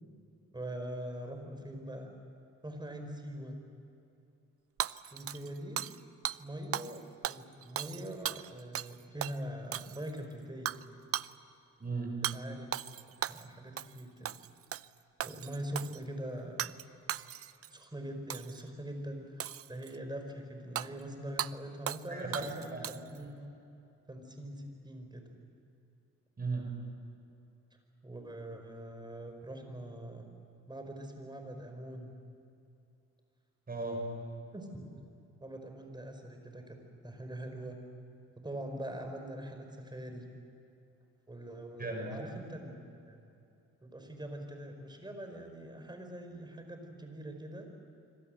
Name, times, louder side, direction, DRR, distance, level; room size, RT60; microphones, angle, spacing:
voice 1, 0.5-2.1 2.6-3.6 5.1-5.8 6.4-10.8 12.3-12.7 13.0-14.3 15.2-16.8 17.7-23.3 24.1-25.3 28.0-30.2 30.7-32.1 34.5-34.7 35.4-36.8 37.0-37.8 38.4-40.2 41.3-42.8 43.1-43.2 43.8-47.7, right 1 dB, 15° right, 5 dB, 5.2 m, -43 dB
Hammer / Shatter, 4.8-6.0 6.2-6.4 6.7-7.0 7.2-8.9 9.2-9.4 9.7-10.2 10.7-10.8 11.1-11.3 12.2-12.4 12.7-13.5 13.8-14.0 14.2-14.9 15.2-16.0 16.6-16.8 17.1-17.7 18.3-18.6 19.4-20.0 20.8-20.9 21.4-21.5 21.9-22.1 22.3-23.2, right 11 dB, 50° right, 0.6 m, -37 dB
voice 2, 11.8-12.2 22.1-22.4 22.7-22.8 26.4-26.7 33.7-34.0 41.8-42.2, right 3 dB, 30° right, 1 dB, 6.6 m, -36 dB
25.5 x 25.5 x 7.9 m, 2.7 s
cardioid pair, 90°, 30 cm